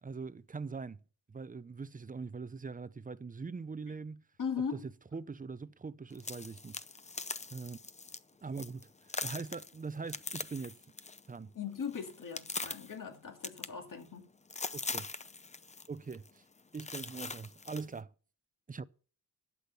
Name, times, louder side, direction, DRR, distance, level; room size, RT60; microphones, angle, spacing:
voice 1, 0.0-1.0 1.3-4.2 4.7-4.8 5.1-6.8 7.5-7.8 8.4-8.9 9.2-10.8 11.3-11.5 14.7-15.1 15.9-16.4 16.7-18.1 18.7-18.9, right 4 dB, 20° right, 0.6 m, -42 dB
voice 2, 4.4-4.8 11.5-14.3, left 6 dB, 60° left, 2.4 m, -39 dB
sound 1, 6.1-8.2 8.5-8.8 9.1-11.3 11.6-12.9 13.4-14.2 14.5-15.9 16.1-16.3 16.7-17.8, left 3 dB, 20° left, 0.6 m, -41 dB
11.5 x 8.5 x 5.5 m
wide cardioid pair, 90°, 37 cm